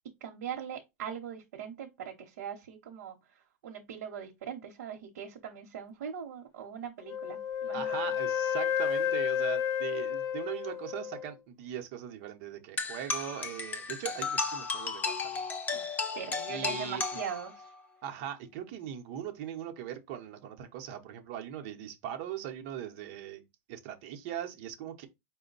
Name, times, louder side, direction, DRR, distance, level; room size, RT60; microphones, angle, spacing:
voice 1, 0.2-8.1 15.7-15.9 16.1-17.7, right 8 dB, 85° right, 0.8 m, -41 dB
Wind instrument woodwind instrument, 7.1-11.3, left 9 dB, 40° left, 1.1 m, -31 dB
voice 2, 7.7-15.4 16.5-17.2 18.0-25.1, right 10 dB, 50° right, 0.8 m, -40 dB
sound 1, 12.8-17.8, left 4 dB, 20° left, 0.6 m, -34 dB
5.1 x 2.1 x 3.9 m
supercardioid pair, 150°, 9 cm